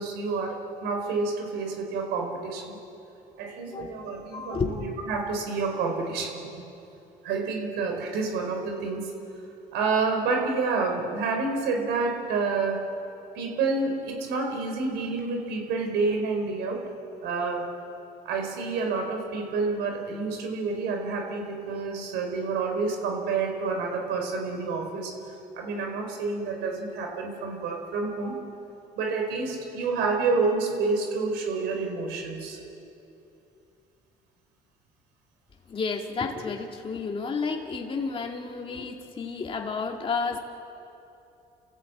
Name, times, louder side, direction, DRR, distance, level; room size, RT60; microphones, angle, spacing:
voice 1, 0.0-2.8 3.4-6.6 7.2-9.1 9.7-12.8 13.3-16.8 17.2-17.7 18.2-25.1 25.6-28.4 28.9-32.6, right 4 dB, 90° right, 2 dB, 4.7 m, -29 dB
voice 2, 3.7-4.8 35.7-40.4, left 4 dB, 30° left, 1 dB, 2.2 m, -31 dB
29.5 x 15.5 x 8.6 m, 2.8 s
cardioid pair, 110°, 17 cm